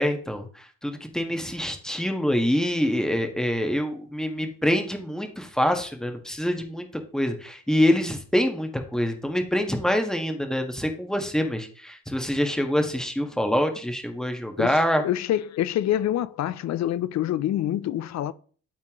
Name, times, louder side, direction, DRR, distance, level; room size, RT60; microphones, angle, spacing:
voice 1, 0.0-6.9 7.1-15.0, equal, ahead, 1.5 m, -25 dB
voice 2, 14.6-18.3, left 12 dB, 65° left, 0.6 m, -26 dB
12.5 x 4.3 x 3.1 m
cardioid pair, 90°, 30 cm